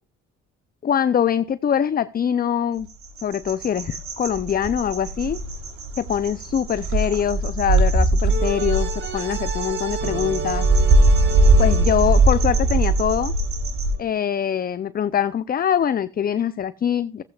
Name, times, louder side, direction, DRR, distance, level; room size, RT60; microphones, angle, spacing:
voice 1, 0.8-2.9 3.2-5.4 6.0-10.7 11.6-13.3 14.0-17.2, left 8 dB, 30° left, 0.4 m, -23 dB
sound 1, 2.9-13.9, right 2 dB, 60° right, 3.5 m, -21 dB
sound 2, 5.2-5.7 8.3-14.0, right 6 dB, 35° right, 1.7 m, -32 dB
15.5 x 8.2 x 2.3 m
supercardioid pair, 65°, 31 cm